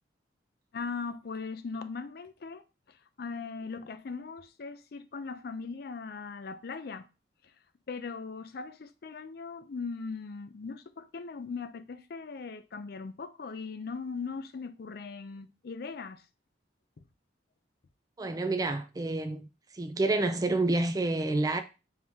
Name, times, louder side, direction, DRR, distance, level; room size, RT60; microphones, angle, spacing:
voice 1, 0.7-7.1 7.4-7.5 7.9-16.2, left 4 dB, 55° left, 0.4 m, -39 dB
voice 2, 18.2-19.5 19.7-21.6, right 2 dB, 20° right, 0.4 m, -28 dB
4.6 x 2.8 x 3.5 m
head